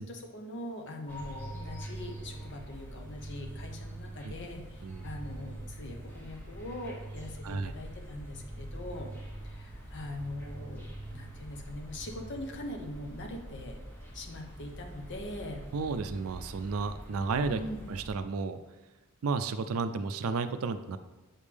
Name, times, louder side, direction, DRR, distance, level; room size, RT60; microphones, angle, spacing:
voice 1, 0.0-9.1 9.4-10.8 11.1-13.8 14.1-15.6 17.5-17.9, left 1 dB, 55° left, 3 dB, 0.9 m, -42 dB
sound 1, 1.1-13.0, right 2 dB, 30° left, 1.5 m, -46 dB
sound 2, 1.1-18.1, equal, 10° left, 1.1 m, -46 dB
voice 2, 15.7-17.6 17.9-18.6 19.2-21.0, right 4 dB, 65° right, 10 dB, 0.4 m, -32 dB
7.3 x 5.3 x 3.4 m, 1.1 s
head